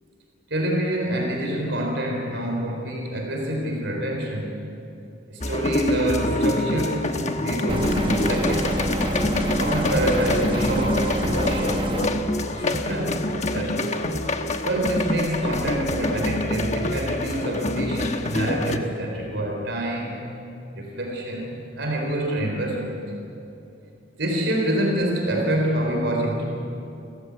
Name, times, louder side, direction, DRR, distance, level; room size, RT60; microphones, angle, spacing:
voice 1, 0.5-4.6 5.3-8.8 9.6-11.8 12.5-13.9 14.6-20.3 20.7-23.0 24.2-26.4, right 1 dB, 70° right, 0 dB, 3.9 m, -26 dB
sound 1, 5.4-18.8, left 1 dB, 35° left, 1.2 m, -26 dB
sound 2, 7.7-12.1, right 1 dB, 25° right, 1.2 m, -26 dB
29.5 x 14.5 x 8.3 m, 2.8 s
head